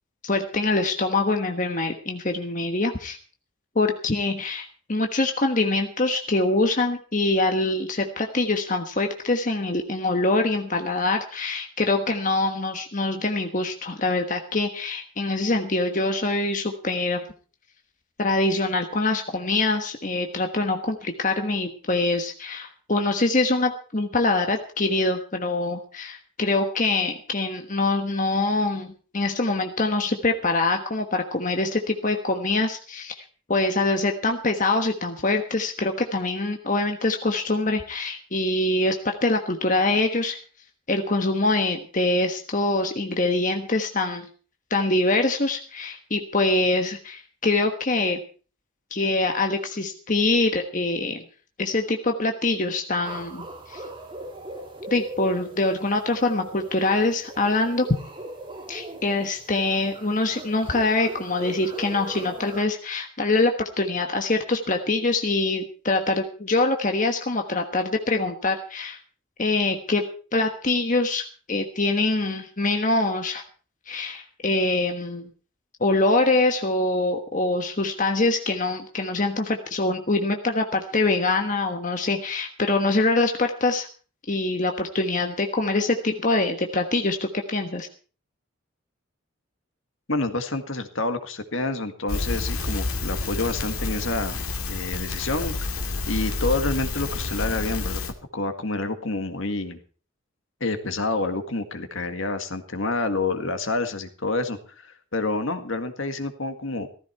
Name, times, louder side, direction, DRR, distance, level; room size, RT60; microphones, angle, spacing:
voice 1, 0.2-3.2 3.7-17.2 18.2-40.4 40.9-44.3 44.7-48.2 48.9-51.2 51.6-53.8 54.9-57.9 58.7-69.0 69.4-70.1 70.3-73.4 73.9-75.3 75.8-83.9 84.3-87.9, left 2 dB, 35° left, 4 dB, 1.3 m, -24 dB
sound 1, 53.0-62.6, right 1 dB, 25° right, 3.3 m, -40 dB
voice 2, 90.1-95.5 96.1-99.8 100.6-106.9, left 2 dB, 65° left, 8 dB, 1.9 m, -28 dB
Crackle, 92.1-98.1, left 3 dB, 85° left, 2.2 m, -29 dB
16.0 x 14.5 x 4.5 m, 0.39 s
head